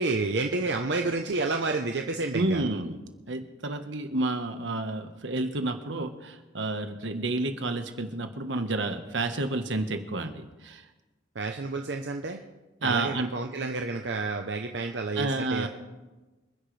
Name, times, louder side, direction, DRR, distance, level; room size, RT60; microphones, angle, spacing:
voice 1, 0.0-2.7 11.3-12.4 12.8-15.7, right 3 dB, 70° right, 4 dB, 0.8 m, -30 dB
voice 2, 2.3-3.0 3.3-10.8 12.8-13.3 15.1-15.7, right 2 dB, 85° right, 7 dB, 1.3 m, -30 dB
27.5 x 10.0 x 3.3 m, 1.2 s
head